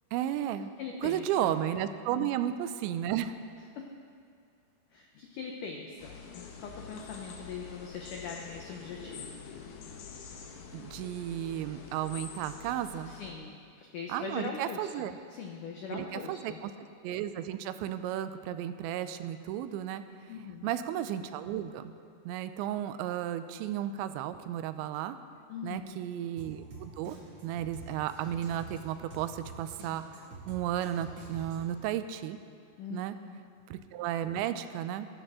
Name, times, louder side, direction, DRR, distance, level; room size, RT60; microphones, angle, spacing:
voice 1, 0.1-0.7 1.0-3.3 10.7-13.1 14.1-15.2 15.9-16.7 17.0-20.0 20.6-21.9 22.3-25.2 25.6-27.2 27.4-32.4 32.9-33.2 33.7-35.1, right 11 dB, 90° right, 11 dB, 2.9 m, -33 dB
voice 2, 0.8-1.5 2.1-2.3 3.8-3.9 4.9-9.4 13.1-14.8 15.3-16.6 20.3-20.7 25.5-25.8 32.8-33.4, left 5 dB, 85° left, 1 dB, 1.8 m, -41 dB
sound 1, 6.0-13.3, left 5 dB, 70° left, 2.1 m, -46 dB
Drum kit, 26.4-31.8, right 3 dB, 40° right, 2.1 m, -47 dB
22.0 x 11.5 x 3.7 m, 2.4 s
omnidirectional pair, 5.1 m